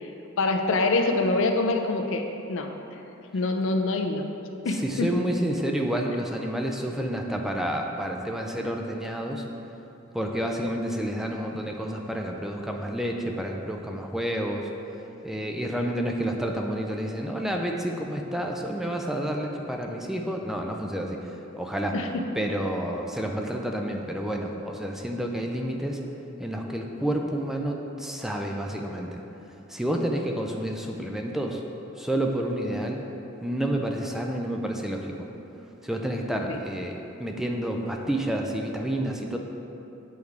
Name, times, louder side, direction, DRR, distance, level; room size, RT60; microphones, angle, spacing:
voice 1, 0.4-2.7 3.3-4.3 4.6-5.1 21.9-22.1 36.5-36.6, left 3 dB, 65° left, 4 dB, 0.5 m, -25 dB
voice 2, 4.7-9.4 10.1-14.7 15.2-22.0 22.4-26.0 26.4-29.2 29.7-31.6 32.0-33.0 33.4-35.3 35.8-39.4, right 1 dB, ahead, 1 dB, 0.4 m, -29 dB
8.4 x 3.5 x 4.6 m, 2.9 s
head